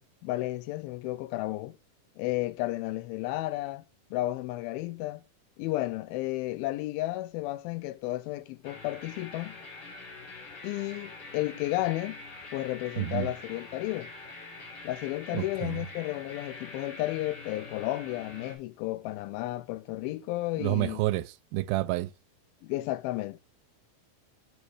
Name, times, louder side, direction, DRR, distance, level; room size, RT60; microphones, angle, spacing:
voice 1, 0.0-1.8 2.2-3.8 4.1-5.2 5.6-9.6 10.6-12.2 12.5-14.1 14.8-21.0 22.6-23.4, left 17 dB, 90° left, 2.4 m, -33 dB
sound 1, 8.6-18.5, left 3 dB, 45° left, 2.3 m, -45 dB
voice 2, 13.0-13.3 15.3-15.8 20.6-22.1, right 17 dB, 90° right, 2.4 m, -29 dB
5.3 x 5.0 x 4.9 m
omnidirectional pair, 4.2 m